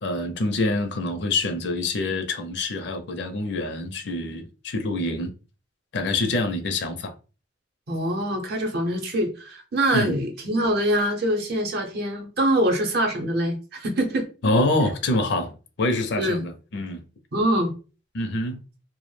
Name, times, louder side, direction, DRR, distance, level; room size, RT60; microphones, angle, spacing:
voice 1, 0.0-5.3 5.9-7.1 9.9-10.1 14.4-17.0 18.1-18.6, left 2 dB, 60° left, 0.5 m, -26 dB
voice 2, 7.9-14.3 16.2-16.4 17.3-17.7, right 1 dB, 55° right, 0.6 m, -24 dB
2.2 x 2.0 x 3.1 m
head